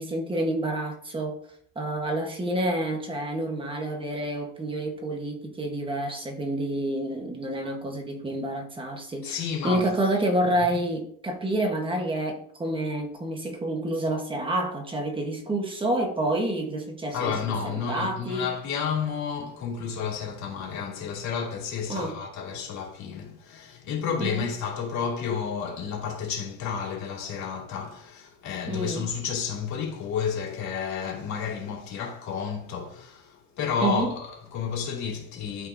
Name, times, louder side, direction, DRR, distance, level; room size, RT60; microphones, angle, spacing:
voice 1, 0.0-1.4 1.7-17.3 17.6-18.5 21.9-22.2 24.2-24.4 28.7-29.1 33.8-34.1, right 1 dB, 15° right, 1.3 m, -28 dB
voice 2, 9.2-9.9 10.7-10.8 17.1-35.7, left 6 dB, 50° left, 2.5 m, -31 dB
12.5 x 5.4 x 2.7 m
cardioid pair, 170°, 36 cm